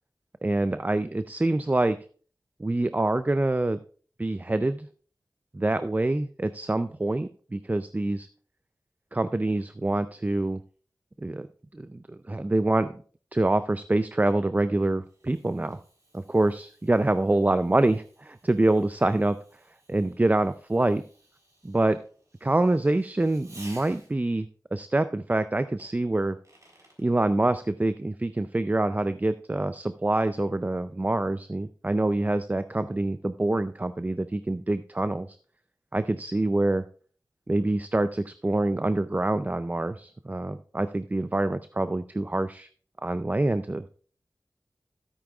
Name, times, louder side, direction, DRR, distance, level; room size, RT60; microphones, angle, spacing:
voice 1, 0.4-2.0 2.6-3.8 4.2-4.9 5.5-8.3 9.1-10.6 11.2-11.5 11.7-13.0 13.3-15.8 16.1-19.4 19.9-21.0 21.6-22.0 22.4-26.4 27.0-35.4 35.9-36.8 37.5-42.7 43.0-43.9, right 2 dB, 25° right, 12 dB, 0.4 m, -26 dB
Fireworks, 14.4-24.4 25.8-27.1, right 1 dB, 50° right, 3.8 m, -56 dB
13.0 x 8.6 x 2.4 m, 0.42 s
wide cardioid pair, 50°, 7 cm